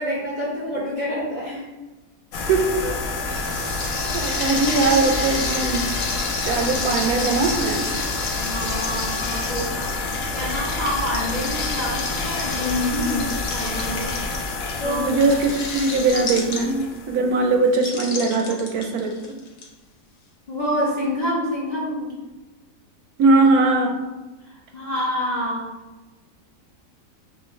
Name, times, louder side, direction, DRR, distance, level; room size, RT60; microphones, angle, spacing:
voice 1, 0.0-1.7 8.3-14.2 14.8-15.1 20.5-22.1 24.5-25.7, equal, 35° left, -6 dB, 0.7 m, -27 dB
sound 1, 2.3-17.7, left 3 dB, 65° left, 0.8 m, -29 dB
voice 2, 2.5-5.9 6.4-8.0 14.8-19.1 23.2-24.0, right 3 dB, 75° right, 3 dB, 1.0 m, -21 dB
sound 2, 3.3-17.0 17.7-19.6, left 3 dB, 80° left, 1.5 m, -31 dB
5.7 x 2.5 x 3.1 m, 1.1 s
omnidirectional pair, 1.7 m